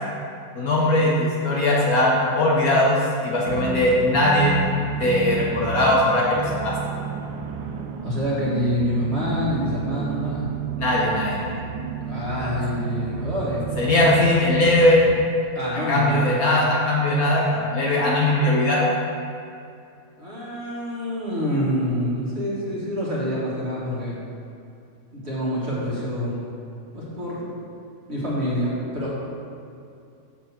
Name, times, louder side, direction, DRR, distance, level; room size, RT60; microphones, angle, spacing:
voice 1, 0.6-4.5 5.0-6.7 10.8-11.6 12.4-12.5 13.8-15.0 15.9-18.9, left 1 dB, 60° left, -4 dB, 1.2 m, -20 dB
sound 1, 3.5-15.3, right 7 dB, 85° right, 1.3 m, -31 dB
voice 2, 8.0-10.5 12.1-13.7 15.6-16.2 20.2-24.2 25.1-26.5 26.9-27.4 28.1-29.2, equal, 35° right, -7 dB, 1.8 m, -26 dB
6.7 x 4.6 x 6.3 m, 2.5 s
omnidirectional pair, 2.0 m